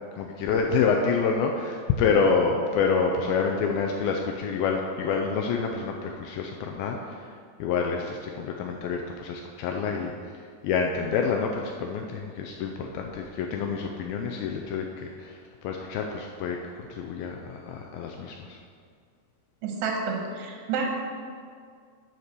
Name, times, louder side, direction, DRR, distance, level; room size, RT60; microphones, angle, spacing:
voice 1, 0.2-7.3 7.6-18.6, left 5 dB, 80° left, 2 dB, 2.2 m, -27 dB
voice 2, 19.6-20.8, right 5 dB, 85° right, 1 dB, 3.3 m, -29 dB
9.6 x 4.4 x 6.6 m, 2.1 s
omnidirectional pair, 4.7 m